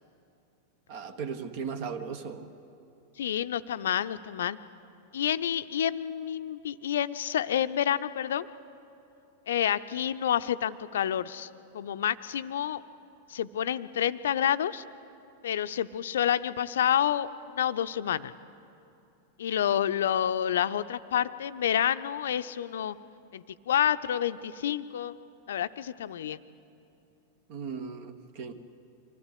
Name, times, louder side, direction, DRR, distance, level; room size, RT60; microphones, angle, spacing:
voice 1, 0.9-2.4 27.5-28.5, right 6 dB, 50° right, 10 dB, 1.3 m, -37 dB
voice 2, 3.2-4.6 5.1-8.5 9.5-11.5 11.7-12.8 13.3-14.8 15.4-17.3 17.5-18.3 19.4-23.0 23.3-25.1 25.5-26.4, left 10 dB, 60° left, 13 dB, 0.6 m, -28 dB
24.5 x 16.5 x 8.5 m, 2.7 s
figure-of-eight pair, 90°, 0 cm